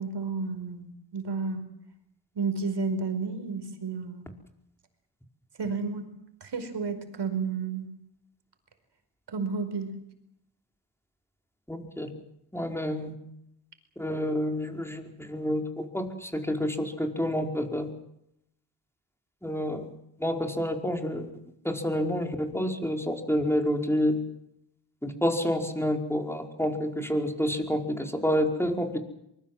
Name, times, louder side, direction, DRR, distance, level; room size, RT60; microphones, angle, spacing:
voice 1, 0.0-1.6 2.3-4.2 5.6-6.0 6.4-7.9 9.3-9.9, right 4 dB, 70° right, 9 dB, 5.0 m, -31 dB
voice 2, 11.7-12.1 12.5-13.1 14.0-17.9 19.4-19.9 20.2-21.3 21.6-24.2 25.0-29.0, equal, 5° left, 4 dB, 5.0 m, -28 dB
24.0 x 21.5 x 7.8 m, 0.79 s
cardioid pair, 60°, 43 cm